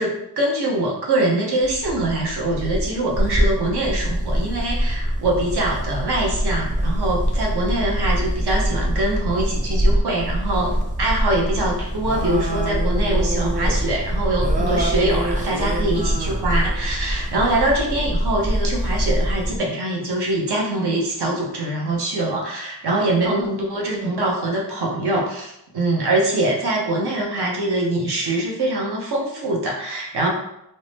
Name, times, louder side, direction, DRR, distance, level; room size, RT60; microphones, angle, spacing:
voice 1, 0.0-10.7 11.0-30.3, right 1 dB, 75° right, -2 dB, 0.8 m, -23 dB
sound 1, 1.6-19.6, equal, 20° right, 0.4 m, -23 dB
2.7 x 2.1 x 3.2 m, 0.80 s
cardioid pair, 70°, 40 cm